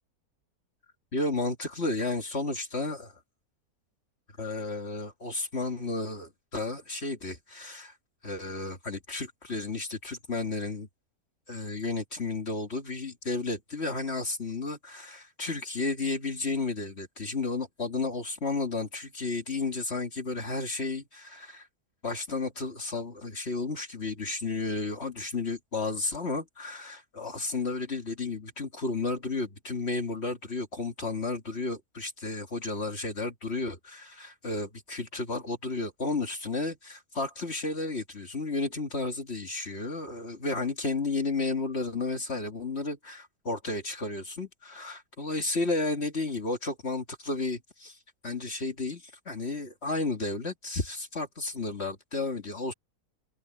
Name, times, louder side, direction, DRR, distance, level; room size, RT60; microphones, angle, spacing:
voice 1, 1.1-3.2 4.4-7.9 8.2-10.9 11.5-21.7 22.0-48.0 48.2-52.7, left 3 dB, 45° left, 2.3 m, -32 dB
omnidirectional pair, 1.6 m